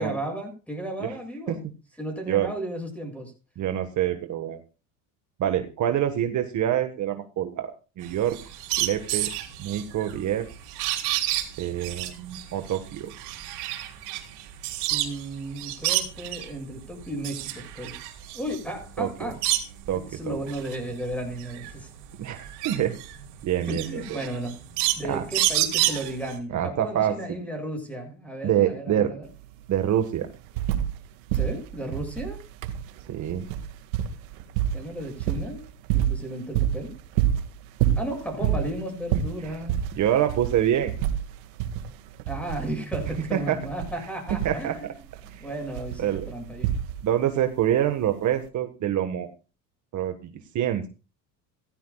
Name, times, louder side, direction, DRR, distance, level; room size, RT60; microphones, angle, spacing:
voice 1, 0.0-1.6 2.0-3.3 14.9-18.0 18.3-19.4 19.9-21.9 23.7-24.6 25.0-29.3 31.3-32.4 34.7-35.6 35.9-36.9 38.0-39.8 42.3-44.9 45.4-46.7, right 1 dB, 5° left, 4 dB, 7.5 m, -34 dB
voice 2, 3.6-4.6 5.4-7.7 8.0-8.4 8.8-9.3 9.6-10.5 11.6-13.1 19.0-19.3 19.9-20.4 22.2-23.0 23.4-24.2 25.1-25.2 26.5-27.1 28.4-29.1 29.7-30.3 33.1-33.5 39.5-39.6 40.0-40.9 43.3-43.6 44.4-44.9 45.3-45.5 46.0-46.3 47.0-49.3 49.9-50.8, right 11 dB, 45° right, 7 dB, 1.6 m, -26 dB
sound 1, 8.0-15.2 15.6-16.5 17.0-19.9 20.4-26.3, right 14 dB, 70° right, 4.1 m, -29 dB
sound 2, 29.2-29.3 29.6-31.0 31.3-47.3 48.3-48.4, right 10 dB, 90° right, 2.2 m, -29 dB
17.5 x 15.0 x 2.4 m, 0.32 s
supercardioid pair, 115°, 40 cm